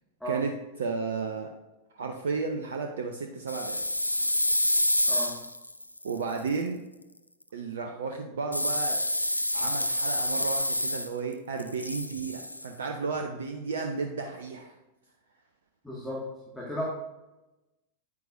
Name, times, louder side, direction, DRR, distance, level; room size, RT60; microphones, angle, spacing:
voice 1, 0.8-1.5 1.9-3.8 6.0-6.8 7.5-9.0 9.5-14.7, right 4 dB, 65° right, 4 dB, 0.6 m, -33 dB
sound 1, 3.5-6.5 8.5-11.3 11.6-12.7, left 1 dB, 85° left, 0.4 m, -28 dB
voice 2, 15.8-16.2 16.5-16.8, right 1 dB, ahead, -6 dB, 1.8 m, -34 dB
9.6 x 9.3 x 2.6 m, 1.0 s
figure-of-eight pair, 90°, 0 cm